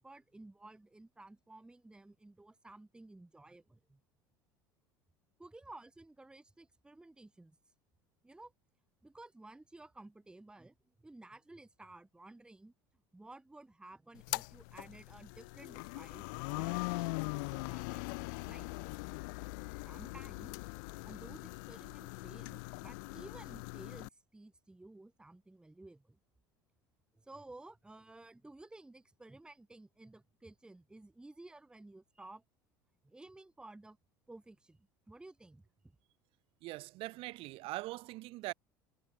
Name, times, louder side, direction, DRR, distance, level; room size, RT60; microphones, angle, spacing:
voice 1, 0.0-4.0 5.4-7.6 8.2-8.5 9.0-12.7 13.1-18.0 18.4-18.8 19.9-20.6 21.0-26.2 27.1-32.4 33.0-34.0 34.3-35.6, right 2 dB, 10° right, 0.8 m, -54 dB
sound 1, 14.2-24.1, left 30 dB, 65° left, 0.4 m, -41 dB
voice 2, 36.6-38.5, right 20 dB, 55° right, 0.9 m, -42 dB
hypercardioid pair, 70°, 11 cm